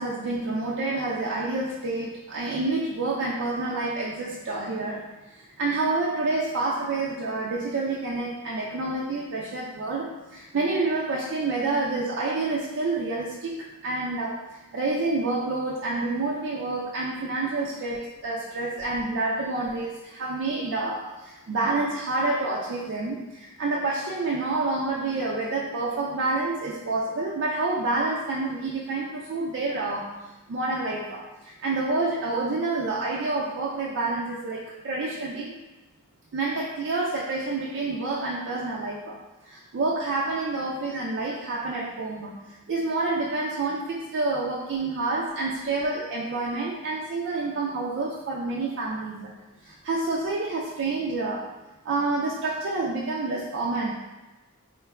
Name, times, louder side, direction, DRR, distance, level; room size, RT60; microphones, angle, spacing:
voice 1, 0.0-5.1 5.6-14.4 14.7-21.0 21.5-30.1 30.5-31.2 31.6-35.6 36.3-39.2 39.5-49.3 49.7-51.5 51.9-53.9, right 3 dB, 55° right, -4 dB, 0.4 m, -28 dB
3.8 x 2.2 x 3.4 m, 1.1 s
head